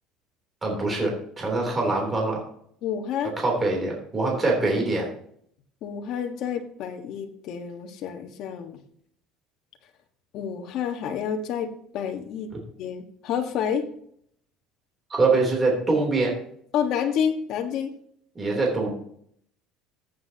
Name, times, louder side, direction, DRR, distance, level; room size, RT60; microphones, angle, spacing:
voice 1, 0.6-2.4 3.4-5.1 15.1-16.4 18.4-18.9, right 3 dB, 20° right, -1 dB, 3.3 m, -24 dB
voice 2, 2.8-3.4 5.8-8.8 10.3-13.9 16.7-17.9, left 8 dB, 55° left, 5 dB, 1.5 m, -29 dB
14.5 x 7.9 x 2.9 m, 0.65 s
cardioid pair, 140°, 0 cm